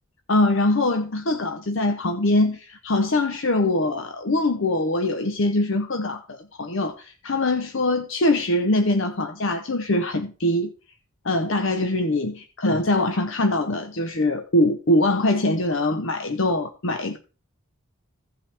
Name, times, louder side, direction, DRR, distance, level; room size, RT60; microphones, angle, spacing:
voice 1, 0.3-10.7 11.2-17.2, left 1 dB, 60° left, 0.8 m, -23 dB
16.0 x 5.5 x 3.5 m
head